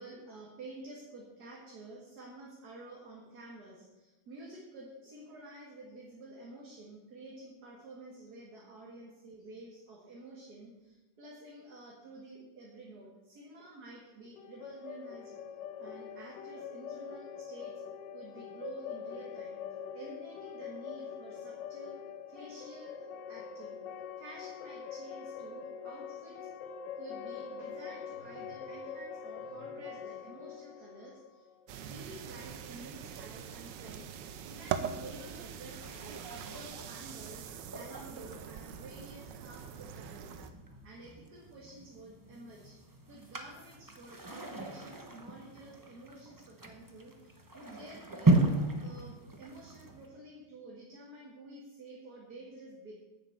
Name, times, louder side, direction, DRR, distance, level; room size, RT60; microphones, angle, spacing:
voice 1, 0.0-15.4 15.8-17.7 18.1-19.6 19.9-22.0 22.3-23.8 24.2-26.5 26.9-31.5 31.8-34.1 34.4-40.5 40.8-42.8 43.1-48.4 48.8-52.9, right 2 dB, 60° right, -3 dB, 2.4 m, -50 dB
sound 1, 14.4-32.1, left 7 dB, 80° left, 1.4 m, -44 dB
sound 2, 31.7-40.5, right 8 dB, 85° right, 1.4 m, -42 dB
sound 3, 35.8-50.1, right 2 dB, 15° right, 0.7 m, -36 dB
9.8 x 8.0 x 7.0 m, 1.1 s
omnidirectional pair, 1.9 m